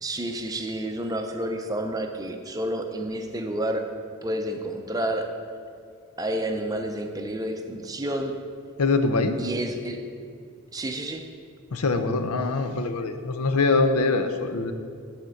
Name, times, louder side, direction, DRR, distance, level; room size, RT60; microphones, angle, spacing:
voice 1, 0.0-3.9 4.2-5.3 6.2-8.4 9.4-10.0 10.7-11.2, right 1 dB, 15° right, 5 dB, 0.5 m, -30 dB
voice 2, 8.8-9.4 11.7-14.7, left 3 dB, 85° left, 8 dB, 0.6 m, -23 dB
10.5 x 4.3 x 6.4 m, 2.3 s
head